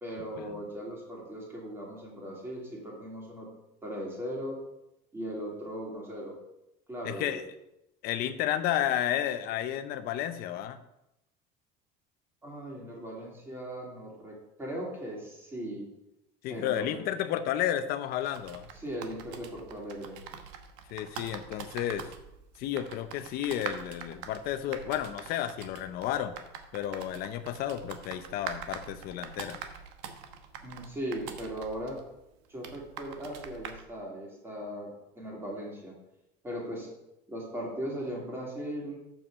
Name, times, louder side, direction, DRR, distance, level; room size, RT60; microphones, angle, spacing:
voice 1, 0.0-3.5 3.8-4.6 5.1-6.3 6.9-7.4 12.4-15.8 16.5-17.0 18.7-20.2 30.6-32.0 32.5-35.9 36.4-36.9 37.3-39.0, equal, 10° right, -3 dB, 2.7 m, -38 dB
voice 2, 7.0-7.4 8.0-10.8 16.4-18.7 20.9-22.1 22.6-26.4 26.7-29.6, left 11 dB, 55° left, 11 dB, 0.7 m, -32 dB
sound 1, 18.2-33.9, right 7 dB, 70° right, 1.1 m, -44 dB
7.2 x 5.6 x 6.3 m, 0.87 s
cardioid pair, 155°, 19 cm